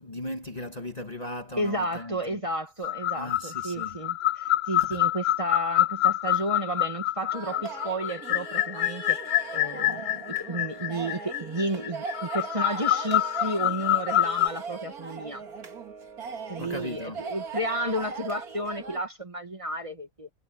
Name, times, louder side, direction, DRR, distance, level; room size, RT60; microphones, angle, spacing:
voice 1, 0.0-2.4 3.1-4.0 4.8-5.0 16.6-17.3, left 1 dB, 30° left, 1.5 m, -37 dB
voice 2, 1.6-9.2 9.5-15.4 16.5-20.3, right 1 dB, 20° right, 1.9 m, -32 dB
sound 1, 2.8-14.5, left 13 dB, 85° left, 1.2 m, -27 dB
sound 2, 7.3-19.0, right 5 dB, 90° right, 2.3 m, -39 dB
omnidirectional pair, 1.5 m